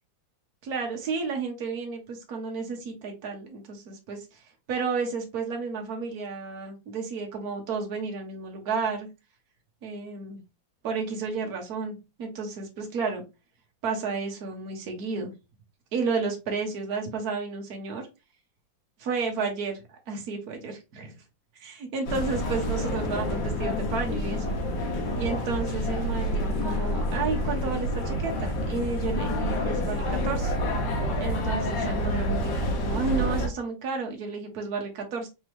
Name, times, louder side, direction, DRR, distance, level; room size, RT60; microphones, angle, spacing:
voice 1, 0.6-9.1 9.8-10.4 10.8-13.2 13.8-15.3 15.9-18.1 19.0-19.8 20.1-21.1 21.6-24.5 25.1-30.6 31.2-35.3, right 4 dB, 55° right, 2 dB, 1.5 m, -32 dB
sound 1, 22.0-33.5, equal, 65° left, 1.5 m, -28 dB
4.2 x 3.0 x 3.3 m, 0.26 s
omnidirectional pair, 2.1 m